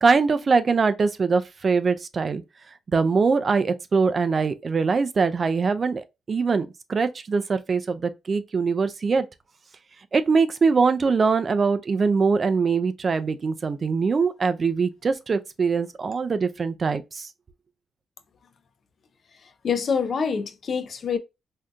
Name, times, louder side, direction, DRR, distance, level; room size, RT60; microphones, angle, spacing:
voice 1, 0.0-2.4 2.9-9.3 10.1-17.3, right 4 dB, 40° right, 0.4 m, -22 dB
voice 2, 19.6-21.2, left 6 dB, 50° left, 0.5 m, -25 dB
3.6 x 2.7 x 2.2 m
cardioid pair, 100°, 0 cm